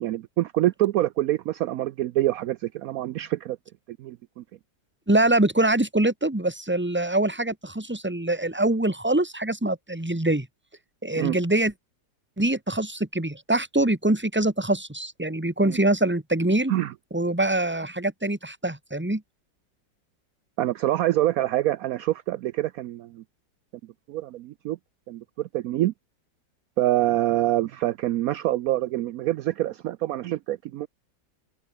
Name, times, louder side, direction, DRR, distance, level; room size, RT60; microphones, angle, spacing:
voice 1, 0.0-3.6 3.9-4.4 11.1-11.4 15.6-15.8 16.7-16.9 20.6-23.2 24.1-24.8 25.1-25.9 26.8-30.9, right 14 dB, 75° right, 0.8 m, -26 dB
voice 2, 5.1-10.5 11.0-11.7 12.4-16.7 17.1-19.2, right 1 dB, 5° right, 1.8 m, -24 dB
open air
omnidirectional pair, 2.0 m